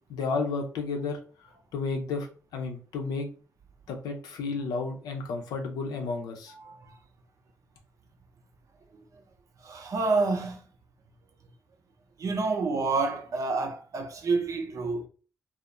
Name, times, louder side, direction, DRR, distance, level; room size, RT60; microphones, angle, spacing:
voice 1, 0.1-1.2 1.7-2.3 2.5-3.3 3.9-6.5, left 4 dB, 80° left, 0.5 m, -32 dB
voice 2, 6.6-6.9 9.6-10.6 12.2-15.1, right 3 dB, 55° right, 0.6 m, -28 dB
2.3 x 2.0 x 2.9 m
supercardioid pair, 50°, 7 cm